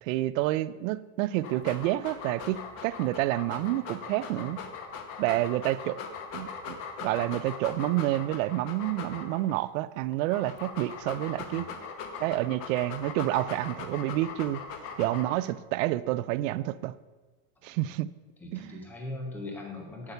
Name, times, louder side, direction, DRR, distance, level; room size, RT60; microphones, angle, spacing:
voice 1, 0.0-4.6 5.2-6.0 6.3-11.7 12.2-14.6 15.0-16.9 17.6-18.1 18.5-18.8, right 16 dB, 60° right, 17 dB, 0.5 m, -29 dB
Dog, 1.3-9.6 10.1-15.5, left 6 dB, 30° left, 0.9 m, -40 dB
voice 2, 18.4-20.1, left 2 dB, 5° left, 2 dB, 0.3 m, -40 dB
8.6 x 8.1 x 6.7 m, 1.3 s
supercardioid pair, 180°, 46 cm